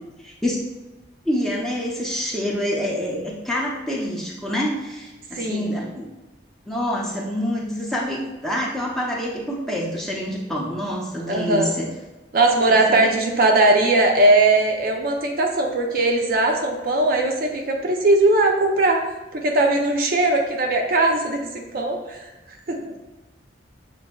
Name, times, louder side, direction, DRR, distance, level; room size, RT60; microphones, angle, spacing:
voice 1, 0.2-0.6 1.2-6.1 6.7-11.9 12.7-13.1, equal, ahead, -4 dB, 0.6 m, -26 dB
voice 2, 5.3-5.7 11.3-11.7 12.3-19.0 19.3-22.2 22.5-22.9, right 2 dB, 50° right, 1 dB, 0.5 m, -19 dB
6.6 x 2.6 x 2.2 m, 1.1 s
head